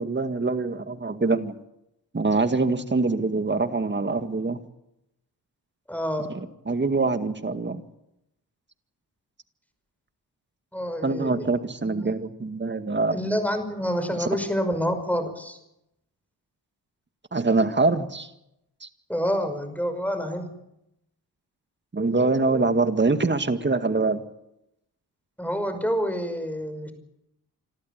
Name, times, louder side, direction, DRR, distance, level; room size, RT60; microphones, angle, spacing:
voice 1, 0.0-1.6 2.1-4.6 6.7-7.8 11.0-13.2 17.3-18.3 18.8-18.9 21.9-24.2, right 3 dB, 25° right, 9 dB, 2.1 m, -24 dB
voice 2, 5.9-6.3 10.7-11.5 11.8-12.1 13.1-15.6 19.1-20.5 25.4-26.9, equal, 5° left, 8 dB, 5.6 m, -28 dB
26.5 x 13.5 x 9.0 m, 0.85 s
cardioid pair, 60°, 40 cm